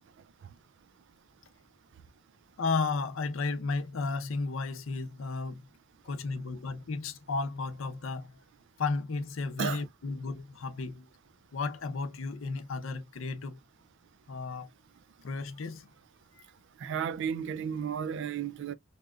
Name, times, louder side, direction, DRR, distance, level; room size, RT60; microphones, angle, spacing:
voice 1, 2.6-5.7 6.0-8.4 8.8-11.1 11.5-13.6 14.3-14.7 15.2-15.9 16.3-16.4, left 4 dB, 75° left, 0.6 m, -33 dB
voice 2, 16.8-18.7, right 7 dB, 65° right, 0.4 m, -33 dB
3.7 x 2.7 x 2.3 m
head